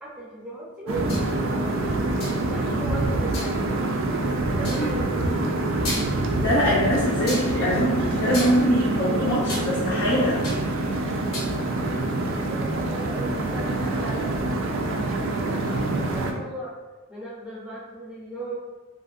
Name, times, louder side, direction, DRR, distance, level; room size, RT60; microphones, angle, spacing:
voice 1, 0.0-3.6 4.6-5.5 12.4-16.7 17.1-18.6, right 1 dB, 5° right, -7 dB, 0.6 m, -37 dB
sound 1, 0.9-16.3, right 2 dB, 65° right, 0.4 m, -26 dB
sound 2, 1.1-1.3 2.2-2.5 3.3-3.6 4.6-4.9 5.5-5.6 5.8-6.4 7.3-7.5 8.3-9.7 10.0-10.7 11.0-11.5, left 1 dB, 85° left, 0.9 m, -34 dB
voice 2, 6.4-10.4, equal, 55° left, -7 dB, 0.5 m, -23 dB
2.9 x 2.6 x 2.4 m, 1.2 s
head